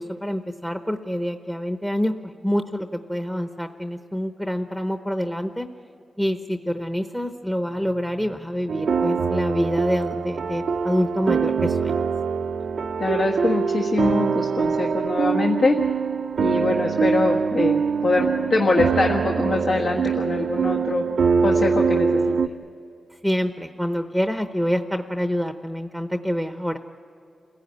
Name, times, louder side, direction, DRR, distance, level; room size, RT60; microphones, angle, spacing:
voice 1, 0.0-5.7 6.2-12.0 23.2-26.8, equal, 5° left, 6 dB, 0.9 m, -26 dB
sound 1, 8.7-22.5, right 5 dB, 75° right, 0.6 m, -23 dB
voice 2, 13.0-15.8 16.4-17.8 18.0-21.0 21.4-22.4, left 3 dB, 65° left, -1 dB, 1.5 m, -23 dB
28.0 x 16.5 x 9.6 m, 2.8 s
wide cardioid pair, 100°, 0 cm